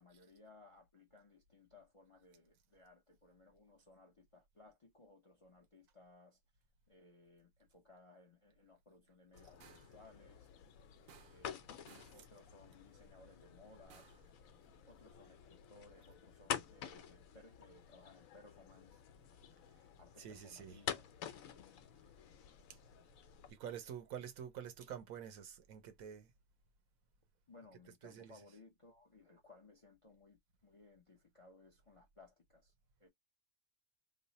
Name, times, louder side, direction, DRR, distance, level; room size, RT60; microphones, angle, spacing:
voice 1, 0.0-6.4 6.9-10.5 11.3-11.7 12.1-14.1 14.9-19.0 20.0-21.1 21.5-21.7 27.5-32.7 33.0-33.1, left 2 dB, 35° left, 0.6 m, -62 dB
sound 1, 9.3-23.5, left 9 dB, 80° left, 1.1 m, -49 dB
sound 2, 9.6-10.0 11.1-11.6 11.9-12.3 13.9-14.3, right 7 dB, 60° right, 0.7 m, -62 dB
voice 2, 20.2-20.8 23.5-26.3 28.0-28.3, right 9 dB, 85° right, 1.2 m, -48 dB
3.1 x 2.0 x 3.9 m
omnidirectional pair, 1.4 m